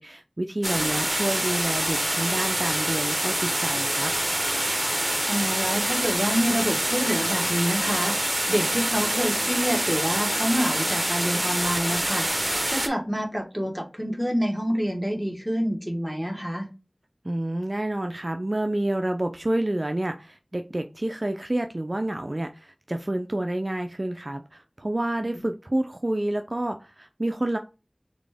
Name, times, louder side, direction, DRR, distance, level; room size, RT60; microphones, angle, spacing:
voice 1, 0.0-4.1 17.2-27.6, right 1 dB, 50° right, 6 dB, 0.4 m, -29 dB
sound 1, 0.6-12.9, right 1 dB, 35° right, 0.8 m, -26 dB
voice 2, 4.9-16.7 25.4-25.5, equal, 5° right, 1 dB, 1.3 m, -27 dB
4.0 x 3.6 x 3.4 m, 0.30 s
wide cardioid pair, 40°, 0 cm